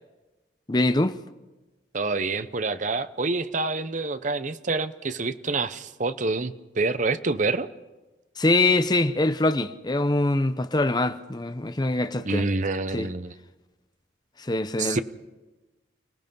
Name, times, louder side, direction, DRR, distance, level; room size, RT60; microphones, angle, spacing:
voice 1, 0.7-1.1 8.4-12.5 12.9-13.1 14.4-15.0, left 2 dB, 20° left, 0.7 m, -23 dB
voice 2, 1.9-7.7 12.2-13.3 14.8-15.0, right 3 dB, 40° right, 0.7 m, -27 dB
30.0 x 17.5 x 5.4 m
head